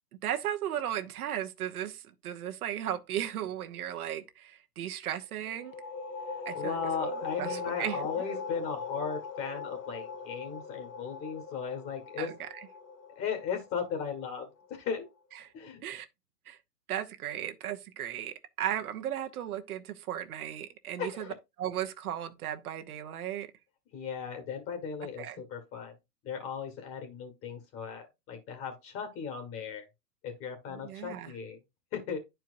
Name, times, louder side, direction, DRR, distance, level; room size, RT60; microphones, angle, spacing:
voice 1, 0.2-5.7 6.4-8.0 12.2-12.7 15.3-15.5 15.8-16.1 16.5-16.6 16.9-23.5 25.2-25.4 30.7-31.3, right 11 dB, 65° right, 1.0 m, -36 dB
sound 1, 5.4-14.9, left 4 dB, 80° left, 1.6 m, -40 dB
voice 2, 6.3-12.3 13.2-15.1 15.5-15.8 21.0-21.3 23.9-25.9 26.2-29.9 30.2-31.6 31.9-32.2, left 6 dB, 30° left, 1.8 m, -37 dB
10.0 x 4.5 x 2.6 m
hypercardioid pair, 135°, 47 cm